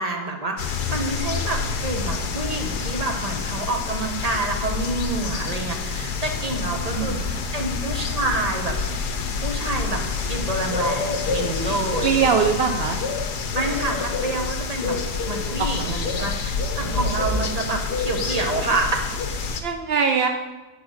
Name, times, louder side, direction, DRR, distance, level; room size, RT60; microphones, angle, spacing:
voice 1, 0.0-8.8 9.4-12.2 13.5-15.0 15.3-19.2, right 2 dB, 25° right, 3 dB, 1.0 m, -28 dB
sound 1, 0.6-19.6, left 5 dB, 75° left, 1.5 m, -27 dB
voice 2, 6.9-7.3 7.6-7.9 11.7-13.0 15.6-16.3 16.8-17.0 19.6-20.3, right 6 dB, 70° right, 5 dB, 0.5 m, -23 dB
10.5 x 4.8 x 6.4 m, 1.2 s
omnidirectional pair, 1.8 m